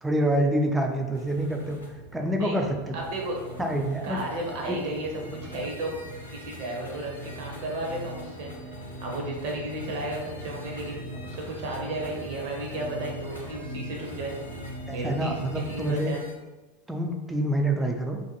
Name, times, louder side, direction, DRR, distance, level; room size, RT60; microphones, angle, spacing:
voice 1, 0.0-1.8 2.1-3.0 3.6-4.2 4.7-4.8 5.2-5.4 14.9-16.1 16.9-18.2, right 1 dB, 10° right, 2 dB, 0.3 m, -27 dB
sound 1, 1.1-16.3, left 1 dB, 80° left, 0.5 m, -48 dB
sound 2, 1.3-16.0, equal, 80° right, 1.2 m, -41 dB
voice 2, 2.9-3.4 4.0-5.1 5.4-6.0 6.3-8.5 9.0-14.3 14.9-15.4 15.7-16.2, right 1 dB, 50° right, -1 dB, 0.6 m, -33 dB
2.5 x 2.1 x 2.8 m, 1.2 s
figure-of-eight pair, 85°, 0 cm